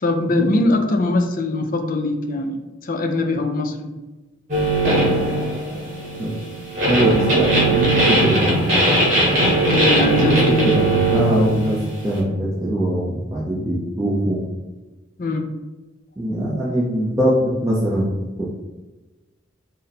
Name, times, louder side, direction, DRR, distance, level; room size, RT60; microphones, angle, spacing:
voice 1, 0.0-3.9 9.7-10.7 15.2-15.5, left 2 dB, 40° left, 5 dB, 0.4 m, -21 dB
sound 1, 4.5-12.2, right 1 dB, 40° right, 1.2 m, -19 dB
voice 2, 6.8-8.6 10.0-10.4 10.6-11.8 12.0-14.4 16.2-18.1 18.4-18.5, right 1 dB, 15° right, -7 dB, 0.5 m, -21 dB
3.8 x 2.1 x 4.1 m, 1.2 s
head